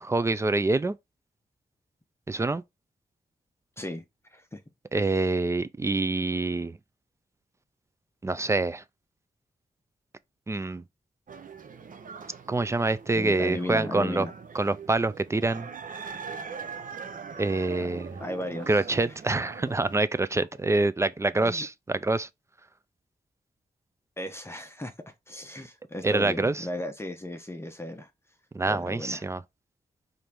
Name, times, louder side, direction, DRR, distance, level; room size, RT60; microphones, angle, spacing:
voice 1, 0.0-1.0 2.3-2.6 4.9-6.8 8.2-8.8 10.5-10.8 12.5-14.3 14.5-15.7 17.4-18.1 18.7-22.3 26.0-26.6 28.5-29.4, right 2 dB, 20° right, 0.3 m, -26 dB
sound 1, 11.3-20.0, right 6 dB, 60° right, 0.6 m, -42 dB
voice 2, 13.1-14.3 18.2-18.8 21.3-21.7 24.2-24.9 25.3-28.1 28.7-29.3, left 1 dB, 15° left, 0.7 m, -35 dB
4.4 x 2.6 x 3.4 m
wide cardioid pair, 85°, 16 cm